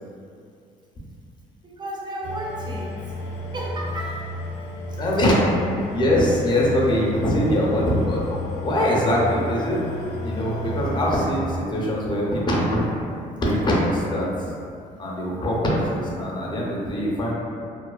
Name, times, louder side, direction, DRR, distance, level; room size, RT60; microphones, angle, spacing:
voice 1, 1.6-3.0 3.5-4.3, right 1 dB, 25° right, -2 dB, 0.4 m, -33 dB
sound 1, 2.2-11.3, left 1 dB, 80° left, 0.5 m, -32 dB
voice 2, 5.0-5.6 5.9-8.2 8.6-9.8 10.2-12.8 13.4-14.3 15.0-17.3, equal, 25° left, -4 dB, 0.5 m, -22 dB
2.5 x 2.2 x 2.2 m, 2.4 s
cardioid pair, 110°, 17 cm